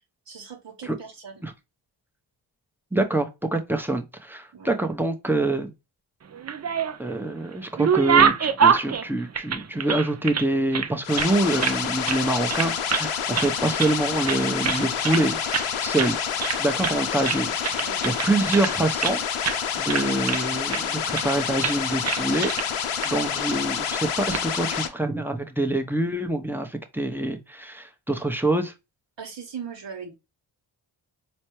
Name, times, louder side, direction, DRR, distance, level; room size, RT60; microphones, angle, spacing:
voice 1, 0.3-1.5 4.5-4.8 17.8-18.0 29.2-30.1, right 6 dB, 55° right, 1.1 m, -39 dB
voice 2, 2.9-5.7 7.0-15.4 15.8-16.2 16.6-19.2 19.5-22.5 23.0-28.7, right 2 dB, 5° right, 0.8 m, -26 dB
sound 1, 6.3-7.2 7.5-10.5 10.7-11.8 12.1-12.2 12.5-13.1 13.3-14.0 14.3-15.2 15.5-15.7 16.0-16.1 16.4-17.0 17.2-19.2 19.4-19.6 19.9-20.8 21.1-21.3 21.6-21.8 22.0-22.7 23.0-23.1 24.1-24.4, right 7 dB, 35° right, 0.5 m, -25 dB
sound 2, 11.0-24.9, left 8 dB, 85° left, 0.8 m, -28 dB
4.2 x 2.2 x 3.0 m
cardioid pair, 50°, 50 cm